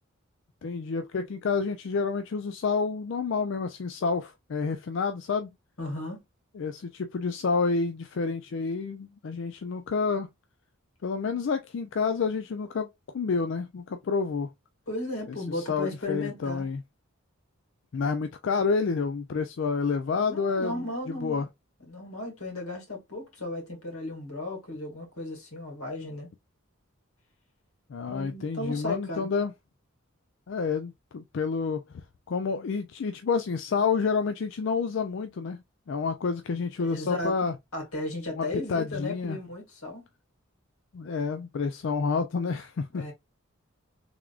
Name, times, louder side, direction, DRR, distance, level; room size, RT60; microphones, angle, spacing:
voice 1, 0.6-5.5 6.5-10.3 11.0-12.9 13.1-14.5 15.5-16.8 17.9-21.5 27.9-29.5 30.5-31.8 32.3-37.6 38.4-39.4 40.9-43.1, left 5 dB, 60° left, 0.4 m, -29 dB
voice 2, 5.8-6.2 14.9-16.7 20.2-21.4 21.9-26.3 28.1-29.3 36.8-40.0 42.9-43.1, left 2 dB, 90° left, 2.1 m, -35 dB
3.5 x 3.5 x 2.4 m
head